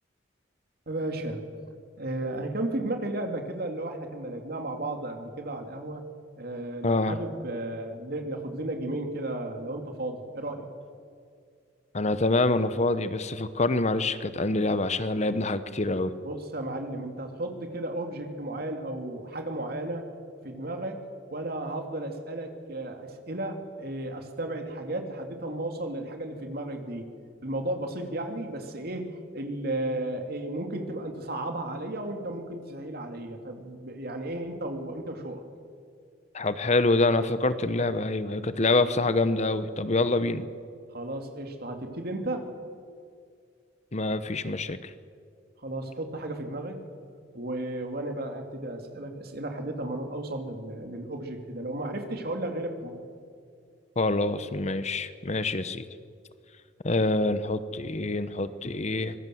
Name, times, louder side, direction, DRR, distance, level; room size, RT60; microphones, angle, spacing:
voice 1, 0.9-1.4 2.0-6.0 6.4-10.7 16.2-20.1 20.4-21.0 21.3-27.1 27.4-35.4 40.9-42.5 45.6-46.8 47.3-53.0, right 1 dB, 55° right, 4 dB, 2.8 m, -34 dB
voice 2, 6.8-7.2 11.9-16.1 36.3-40.4 43.9-44.9 54.0-55.8 56.8-59.1, left 2 dB, 40° left, 13 dB, 0.9 m, -26 dB
25.0 x 21.5 x 7.8 m, 2.2 s
head